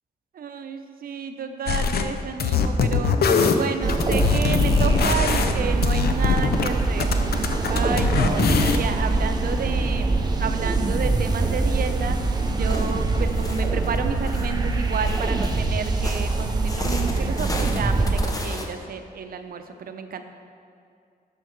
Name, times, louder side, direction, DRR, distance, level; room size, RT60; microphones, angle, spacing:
voice 1, 0.4-3.2 3.5-12.2 12.5-20.2, right 6 dB, 65° right, 8 dB, 0.6 m, -31 dB
sound 1, 1.7-2.0 2.4-6.7 7.0-8.9, left 5 dB, 75° left, 0.6 m, -22 dB
sound 2, 3.8-18.3, right 3 dB, 25° right, 0.7 m, -24 dB
sound 3, 12.7-18.7, left 1 dB, 20° left, 0.8 m, -36 dB
11.0 x 6.5 x 4.5 m, 2.4 s
wide cardioid pair, 180°, 16 cm